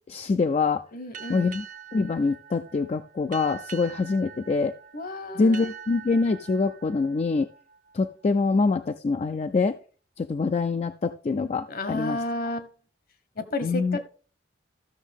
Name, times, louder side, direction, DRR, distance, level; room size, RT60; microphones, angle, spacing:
voice 1, 0.1-0.8 1.3-1.7 1.9-4.7 5.4-7.5 7.9-9.8 10.2-12.2 13.6-14.0, left 4 dB, 35° left, 9 dB, 0.3 m, -25 dB
voice 2, 0.9-1.5 4.9-5.7 11.7-12.7 13.4-14.0, left 2 dB, 55° left, 12 dB, 1.0 m, -32 dB
sound 1, 1.1-8.4, right 7 dB, 50° right, 0.7 m, -44 dB
14.0 x 6.3 x 3.5 m, 0.38 s
head